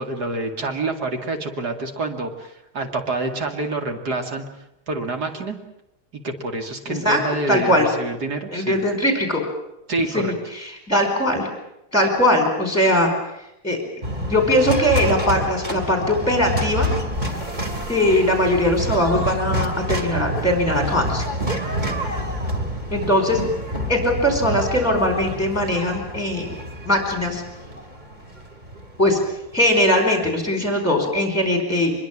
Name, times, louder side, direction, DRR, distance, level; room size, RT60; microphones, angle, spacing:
voice 1, 0.0-4.4 4.9-5.6 6.1-8.8 9.9-10.3, right 2 dB, 80° right, 4 dB, 3.1 m, -27 dB
voice 2, 6.9-7.2 7.5-7.9 8.5-9.4 10.1-11.5 11.9-13.1 13.6-13.8 14.1-16.9 17.9-21.2 22.9-23.4 23.9-26.5 26.8-27.4 29.0-29.2 29.5-31.9, left 1 dB, 10° left, 4 dB, 4.9 m, -20 dB
sound 1, 14.0-30.2, equal, 25° right, 2.8 m, -28 dB
24.0 x 22.5 x 7.5 m, 0.87 s
omnidirectional pair, 1.7 m